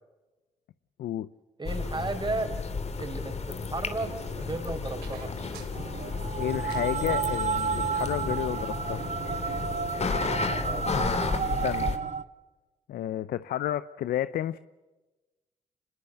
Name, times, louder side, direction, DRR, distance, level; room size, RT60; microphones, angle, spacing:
voice 1, 1.6-2.5 3.0-5.3 10.6-10.9, right 3 dB, 30° right, 7 dB, 5.0 m, -34 dB
sound 1, 1.7-12.0, left 4 dB, 45° left, 2.7 m, -33 dB
sound 2, 4.0-9.8, right 7 dB, 85° right, 3.5 m, -50 dB
sound 3, 5.7-12.2, right 6 dB, 50° right, 1.1 m, -31 dB
voice 2, 6.4-9.0 11.6-12.0 12.9-14.6, left 12 dB, 75° left, 15 dB, 0.7 m, -31 dB
26.0 x 21.0 x 7.8 m, 1.1 s
supercardioid pair, 60°, 16 cm